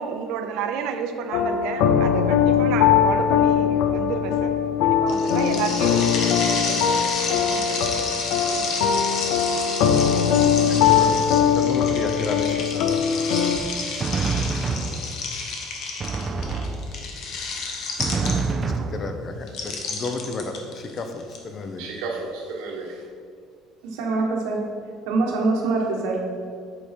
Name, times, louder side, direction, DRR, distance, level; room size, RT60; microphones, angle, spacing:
voice 1, 0.0-4.5 4.8-8.1 8.4-9.0 9.5-9.6, right 6 dB, 70° right, 7 dB, 0.6 m, -31 dB
sound 1, 1.3-13.6, left 8 dB, 80° left, 0.6 m, -21 dB
sound 2, 5.1-18.7 19.5-21.4, left 4 dB, 60° left, 1.1 m, -30 dB
voice 2, 10.7-13.0 18.4-21.9, left 3 dB, 30° left, 6 dB, 0.7 m, -32 dB
Drum, 13.5-15.4 16.0-17.3 18.0-19.5, right 4 dB, 25° right, 0.4 m, -27 dB
voice 3, 21.8-22.9 23.8-24.6 25.1-26.3, right 3 dB, 90° right, 0 dB, 1.4 m, -25 dB
8.2 x 4.9 x 4.4 m, 2.2 s
cardioid pair, 140°, 0 cm